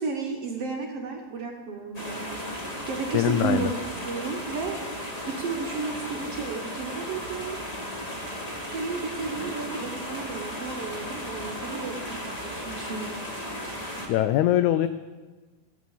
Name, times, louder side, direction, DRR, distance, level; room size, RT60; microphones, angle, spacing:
voice 1, 0.0-2.5 2.9-7.6 8.7-13.8, right 4 dB, 60° right, 2 dB, 1.7 m, -33 dB
sound 1, 1.9-14.1, equal, 20° left, 1.0 m, -35 dB
voice 2, 3.1-3.7 14.1-14.9, left 12 dB, 90° left, 11 dB, 1.7 m, -22 dB
16.5 x 8.2 x 7.1 m, 1.3 s
omnidirectional pair, 3.9 m